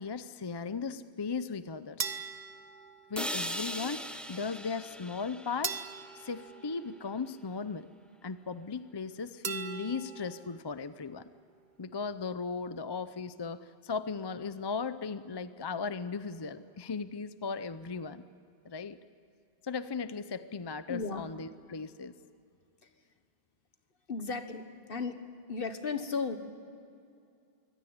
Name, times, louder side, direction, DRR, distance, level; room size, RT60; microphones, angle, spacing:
voice 1, 0.0-2.1 3.1-5.8 6.1-7.9 8.2-11.3 11.8-18.2 18.6-19.0 19.6-22.1, left 5 dB, 30° left, 13 dB, 0.5 m, -37 dB
sound 1, 2.0-3.5 5.6-7.5 9.4-10.6, right 5 dB, 45° right, 1.1 m, -40 dB
sound 2, 3.2-7.2, equal, ahead, 1.1 m, -40 dB
voice 2, 20.9-21.4 24.1-25.2 25.5-26.4, left 4 dB, 60° left, 8 dB, 1.5 m, -35 dB
24.0 x 17.0 x 9.5 m, 2.5 s
omnidirectional pair, 1.1 m